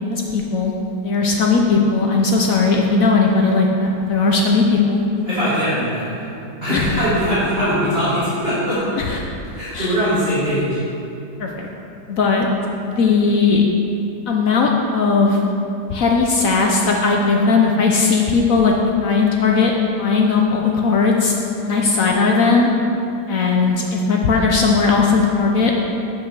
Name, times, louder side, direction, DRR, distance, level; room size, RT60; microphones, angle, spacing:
voice 1, 0.1-0.7 1.0-5.0 6.7-7.0 9.0-9.2 9.7-10.0 11.4-11.7 12.1-12.5 12.8-13.6 14.3-15.4 15.9-19.7 20.0-21.3 21.6-22.7 23.3-25.7, left 4 dB, 65° left, 0 dB, 0.9 m, -17 dB
voice 2, 5.3-6.3 6.6-9.0 9.5-10.8, equal, 30° right, -13 dB, 2.3 m, -21 dB
8.4 x 5.3 x 6.0 m, 2.7 s
omnidirectional pair, 2.0 m